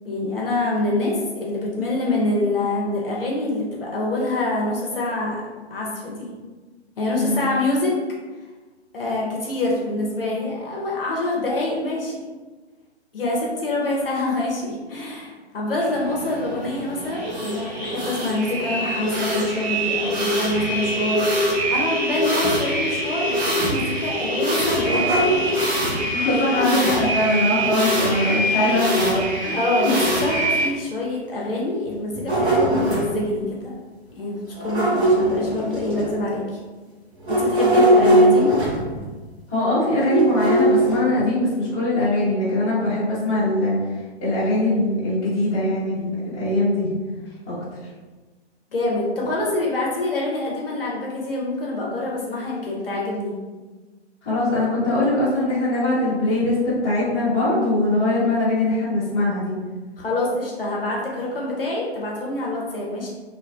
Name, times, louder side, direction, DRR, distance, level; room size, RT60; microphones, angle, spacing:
voice 1, 0.0-5.4 5.7-6.3 7.0-8.0 8.9-12.2 13.1-21.2 21.7-25.2 26.6-26.8 29.5-33.7 34.1-34.4 34.6-36.6 37.3-38.6 48.7-53.3 60.0-63.1, left 2 dB, 55° left, -3 dB, 0.6 m, -25 dB
sound 1, 15.9-30.7, equal, 40° right, 0.9 m, -24 dB
sound 2, 24.5-26.0 28.2-28.3 28.8-28.9 29.6-29.7 30.3-30.4 31.9-33.2 34.5-36.3 37.2-39.1 40.1-41.0, right 1 dB, 70° right, 1.1 m, -20 dB
voice 2, 26.1-29.6 38.0-38.4 39.5-43.8 44.2-46.9 47.5-47.6 54.2-59.5, left 1 dB, 15° left, -11 dB, 0.7 m, -21 dB
2.5 x 2.2 x 2.3 m, 1.3 s
figure-of-eight pair, 130°, 34 cm